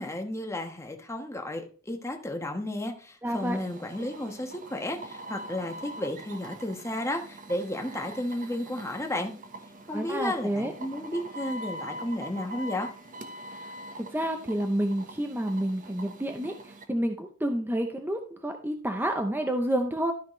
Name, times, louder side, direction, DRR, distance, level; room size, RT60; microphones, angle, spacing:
voice 1, 0.0-9.3 9.9-12.9, left 1 dB, 15° left, 3 dB, 1.3 m, -33 dB
voice 2, 3.2-3.6 9.9-10.7 13.5-20.1, right 1 dB, 10° right, 5 dB, 0.7 m, -29 dB
sound 1, 3.3-16.8, right 1 dB, 40° right, 1.2 m, -43 dB
13.0 x 5.7 x 3.2 m, 0.41 s
head